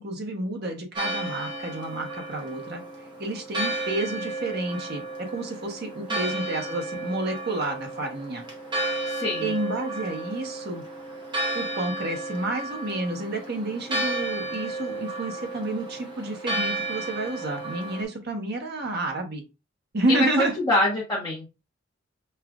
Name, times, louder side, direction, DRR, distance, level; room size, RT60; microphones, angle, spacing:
voice 1, 0.0-2.8 3.2-8.4 9.4-10.8 11.5-19.4 19.9-20.6, right 2 dB, 55° right, 3 dB, 1.0 m, -30 dB
Church bell, 1.0-18.0, right 2 dB, 25° right, 1.0 m, -33 dB
voice 2, 9.1-9.5 20.1-21.5, left 1 dB, 25° left, -5 dB, 1.1 m, -25 dB
5.6 x 2.4 x 2.4 m, 0.28 s
head